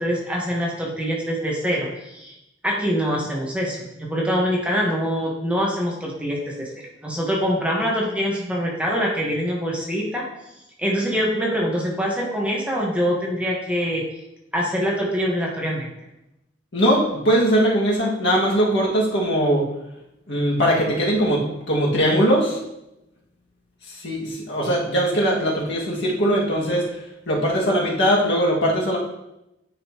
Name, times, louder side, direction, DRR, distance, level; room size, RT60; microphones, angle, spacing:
voice 1, 0.0-2.4 2.6-10.3 10.8-14.1 14.5-15.9, equal, 5° right, -3 dB, 1.2 m, -24 dB
voice 2, 16.7-19.7 20.3-21.4 21.7-22.6 24.0-26.8 27.3-29.0, equal, 70° left, -4 dB, 1.9 m, -20 dB
9.3 x 5.1 x 3.0 m, 0.88 s
head